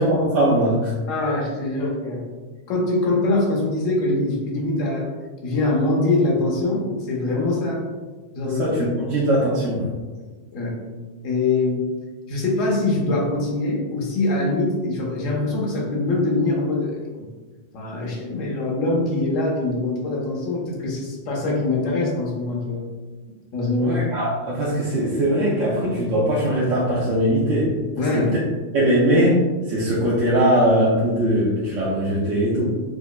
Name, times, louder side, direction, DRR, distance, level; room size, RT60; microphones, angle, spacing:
voice 1, 0.0-0.9 8.4-9.9 23.8-27.7 28.2-28.4 28.7-32.8, right 1 dB, 80° right, -7 dB, 1.0 m, -20 dB
voice 2, 1.1-2.3 2.7-5.1 5.4-7.9 8.3-8.6 10.5-10.8 11.2-11.8 12.3-17.3 17.7-22.8 23.5-24.0 28.0-28.3, left 2 dB, 85° left, -2 dB, 1.1 m, -23 dB
4.8 x 2.1 x 2.3 m, 1.3 s
omnidirectional pair, 1.3 m